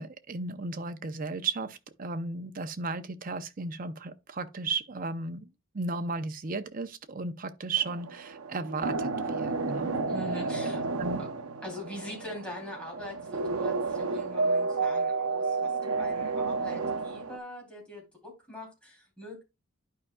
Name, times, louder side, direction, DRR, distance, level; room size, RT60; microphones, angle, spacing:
voice 1, 0.0-5.5 5.7-9.9 10.6-10.7 11.0-11.3, right 3 dB, 40° right, 0.6 m, -35 dB
sound 1, 7.8-17.4, right 3 dB, 85° right, 0.7 m, -31 dB
voice 2, 10.1-10.8 11.2-11.3 11.6-19.4, left 1 dB, 5° left, 3.1 m, -42 dB
11.5 x 4.9 x 2.3 m
head